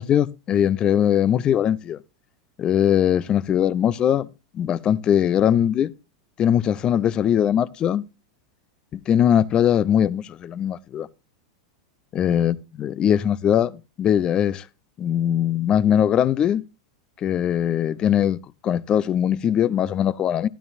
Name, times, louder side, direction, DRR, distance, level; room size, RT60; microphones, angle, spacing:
voice 1, 0.0-2.0 2.6-4.3 4.5-5.9 6.4-8.0 8.9-11.1 12.1-14.6 15.0-16.6 17.2-18.4 18.6-20.5, left 9 dB, 30° left, 0.5 m, -21 dB
12.5 x 12.0 x 2.5 m
figure-of-eight pair, 90°, 3 cm